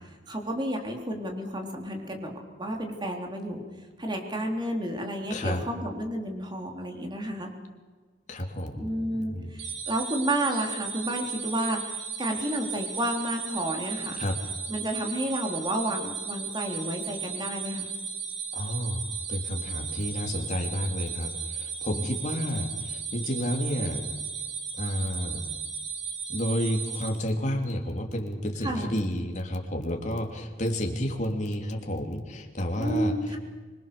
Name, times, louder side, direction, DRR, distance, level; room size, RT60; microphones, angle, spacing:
voice 1, 0.3-2.3 2.6-3.6 4.0-7.5 8.8-14.2 14.7-17.9 28.6-29.0 32.8-33.4, right 1 dB, 25° right, 2 dB, 3.7 m, -31 dB
voice 2, 5.3-5.6 8.3-8.9 9.2-9.5 14.2-14.4 18.5-19.0 19.3-24.0 24.8-25.4 26.3-33.1, equal, 40° left, 2 dB, 3.2 m, -30 dB
sound 1, 9.6-27.1, right 6 dB, 85° right, 4.9 m, -35 dB
25.5 x 22.0 x 6.9 m, 1.4 s
head